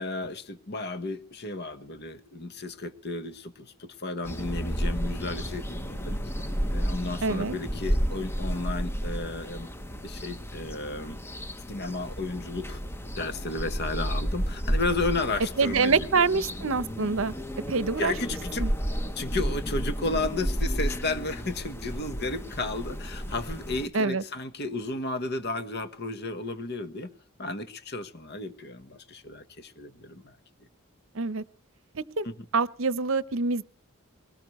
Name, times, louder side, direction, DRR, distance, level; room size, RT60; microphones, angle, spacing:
voice 1, 0.0-6.2 6.7-9.7 10.0-11.2 11.7-12.8 13.2-16.2 18.0-18.6 19.2-27.1 27.4-30.4 32.2-32.4, left 2 dB, 50° left, 1.3 m, -33 dB
sound 1, 4.2-23.9, equal, 10° left, 0.9 m, -32 dB
voice 2, 7.2-7.5 15.6-17.3 17.7-18.1 18.6-18.7 23.9-24.2 31.1-31.4 31.9-32.3 32.5-33.6, right 4 dB, 60° right, 0.8 m, -25 dB
21.5 x 18.5 x 3.1 m
head